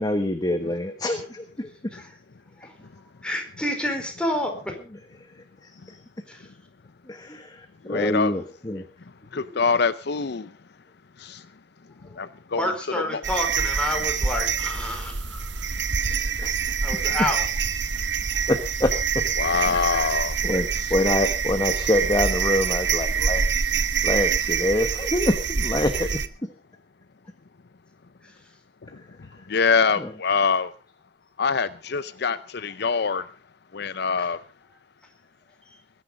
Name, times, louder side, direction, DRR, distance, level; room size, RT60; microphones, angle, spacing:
voice 1, 0.0-1.7 2.6-2.7 5.2-6.0 7.0-8.9 9.3-9.6 12.0-12.2 16.0-17.1 18.5-19.2 19.6-20.2 20.4-23.7 24.0-26.1 28.9-29.5 30.0-30.1, left 1 dB, 20° left, 1.3 m, -27 dB
voice 2, 3.2-4.7 6.3-6.5 12.5-15.8 16.8-17.4 28.2-28.5 34.2-34.3, left 1 dB, 5° left, 4.5 m, -29 dB
voice 3, 7.8-8.3 9.3-10.6 11.2-11.5 12.0-12.7 13.1-13.2 19.4-20.4 28.8-28.9 29.2-30.7 31.4-33.3 33.7-34.4, left 5 dB, 65° left, 0.7 m, -24 dB
sound 1, 13.2-26.3, right 6 dB, 75° right, 1.1 m, -25 dB
21.0 x 10.0 x 5.3 m
head